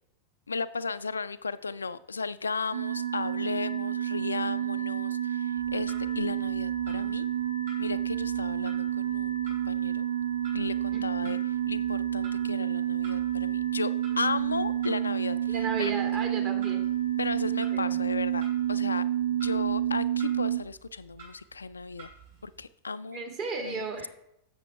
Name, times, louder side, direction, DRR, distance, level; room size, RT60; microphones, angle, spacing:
voice 1, 0.5-7.3 7.8-10.0 10.5-11.4 11.7-13.9 14.2-15.9 17.2-19.0 19.3-22.1 22.4-23.2 23.6-23.7, left 4 dB, 75° left, 14 dB, 0.3 m, -35 dB
sound 1, 2.7-20.6, right 11 dB, 75° right, 0.6 m, -29 dB
Clock, 5.5-22.7, right 5 dB, 60° right, 3.4 m, -53 dB
voice 2, 10.9-11.4 15.5-16.8 17.7-18.0 23.1-24.1, right 4 dB, 40° right, 3 dB, 2.1 m, -35 dB
7.7 x 6.6 x 4.6 m, 0.78 s
figure-of-eight pair, 90°, 0 cm